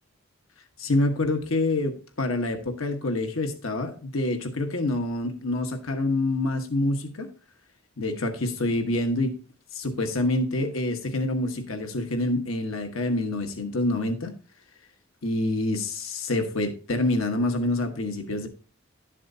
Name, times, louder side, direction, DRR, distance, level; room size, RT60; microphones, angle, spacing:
voice 1, 0.8-7.3 8.0-9.4 9.7-14.3 15.2-18.5, left 2 dB, 85° left, 5 dB, 1.3 m, -27 dB
11.5 x 7.4 x 2.7 m, 0.36 s
head